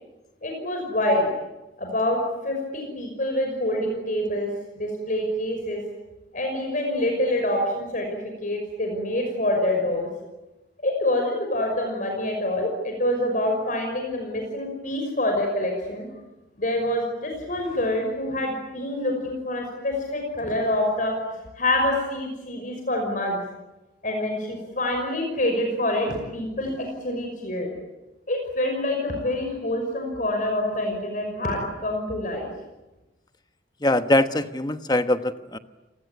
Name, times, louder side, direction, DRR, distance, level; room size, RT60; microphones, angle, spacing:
voice 1, 0.4-1.3 1.8-2.2 2.4-5.8 6.3-8.1 8.4-10.1 10.8-16.1 16.6-21.1 21.6-23.4 24.0-27.7 28.3-32.5, left 1 dB, 45° left, 2 dB, 5.8 m, -26 dB
voice 2, 33.8-35.6, left 1 dB, 20° left, 9 dB, 1.2 m, -22 dB
30.0 x 20.0 x 9.5 m, 1.0 s
head